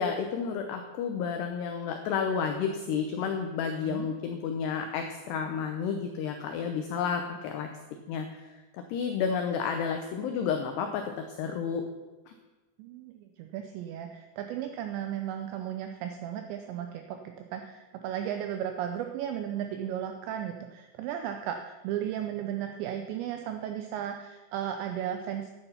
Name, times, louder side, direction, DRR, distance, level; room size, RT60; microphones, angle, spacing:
voice 1, 0.0-7.7 8.1-11.0 11.3-11.8 12.3-12.4, left 6 dB, 90° left, 5 dB, 2.3 m, -31 dB
voice 2, 12.8-25.5, right 10 dB, 85° right, 6 dB, 2.5 m, -35 dB
11.0 x 10.0 x 5.7 m, 1.2 s
omnidirectional pair, 5.8 m